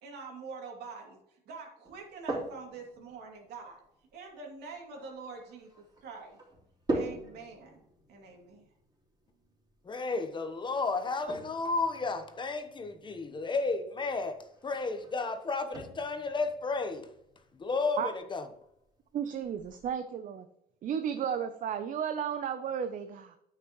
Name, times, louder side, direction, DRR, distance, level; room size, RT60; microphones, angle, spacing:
voice 1, 0.0-1.2 1.5-3.8 4.1-6.4 6.9-7.8 8.1-8.7, right 4 dB, 75° right, 2.7 m, -45 dB
sound 1, 1.8-19.9, right 2 dB, 25° right, 3.4 m, -44 dB
voice 2, 9.8-14.4 14.6-17.1 17.5-18.5, left 3 dB, 30° left, 1.1 m, -32 dB
voice 3, 19.1-20.5 20.8-23.4, right 8 dB, 50° right, 0.7 m, -33 dB
9.3 x 8.8 x 3.1 m
cardioid pair, 110°, 17 cm